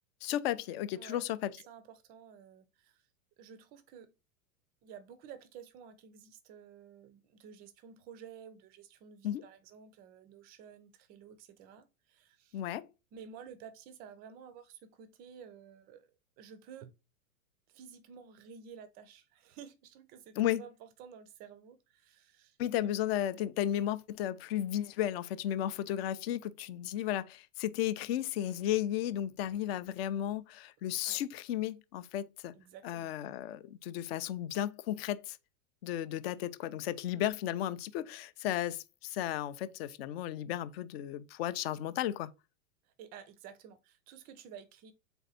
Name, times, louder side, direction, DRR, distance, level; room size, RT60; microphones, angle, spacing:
voice 1, 0.2-1.5 9.2-9.4 12.5-12.9 20.4-20.6 22.6-32.5 32.8-35.4 35.8-42.3, left 12 dB, 45° left, 0.5 m, -34 dB
voice 2, 1.5-3.0 3.4-4.1 4.8-12.6 13.1-16.1 16.4-16.9 17.7-22.9 23.7-23.8 31.0-31.2 32.5-33.1 37.1-37.2 42.8-44.9, right 7 dB, 25° right, 0.4 m, -52 dB
4.0 x 3.4 x 3.9 m
hypercardioid pair, 135°, 42 cm